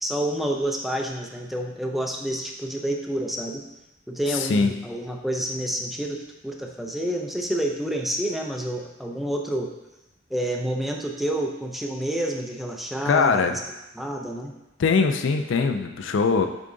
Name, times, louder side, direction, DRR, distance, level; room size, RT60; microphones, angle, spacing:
voice 1, 0.0-3.6 4.1-9.7 10.3-13.5 14.0-14.5, right 1 dB, ahead, 1 dB, 0.5 m, -28 dB
voice 2, 4.3-4.7 13.1-13.6 14.8-16.5, left 4 dB, 65° left, 6 dB, 0.4 m, -21 dB
7.1 x 3.8 x 3.8 m, 0.97 s
head